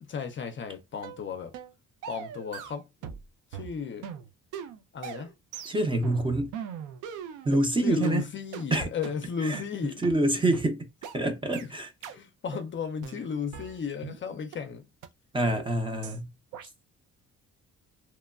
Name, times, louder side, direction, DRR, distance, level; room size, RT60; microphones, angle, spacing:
voice 1, 0.0-1.5 2.1-3.1 3.5-4.1 4.9-5.3 7.8-10.0 10.4-10.6 12.1-14.9, left 6 dB, 40° left, 0.5 m, -34 dB
sound 1, 1.0-1.2 1.5-1.7 2.0-3.3 3.5-7.7 8.0-8.2 8.5-8.7 9.0-9.2 9.5-9.7 10.0-10.2 10.5-10.7 11.0-11.2 11.5-11.7 12.0-12.2 12.5-12.7 13.0-14.2 14.5-14.6 15.0-15.1 15.5-15.7 16.0-16.2 16.5-16.7, right 8 dB, 85° right, 0.5 m, -40 dB
voice 2, 5.7-6.5 7.4-8.2 8.7-8.9 9.4-10.9 11.1-11.9 15.3-16.3, right 1 dB, 15° right, 0.5 m, -26 dB
3.0 x 2.2 x 2.3 m
cardioid pair, 90°, 30 cm